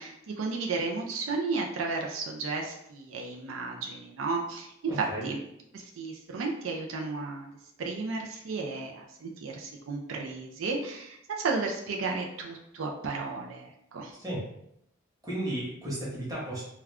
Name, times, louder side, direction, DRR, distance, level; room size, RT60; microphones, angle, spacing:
voice 1, 0.0-5.4 5.7-7.5 7.8-14.1, right 4 dB, 80° right, 1 dB, 0.4 m, -33 dB
voice 2, 4.9-5.2 14.2-14.4 15.2-16.6, right 1 dB, 20° right, -6 dB, 1.0 m, -34 dB
2.3 x 2.2 x 3.4 m, 0.78 s
head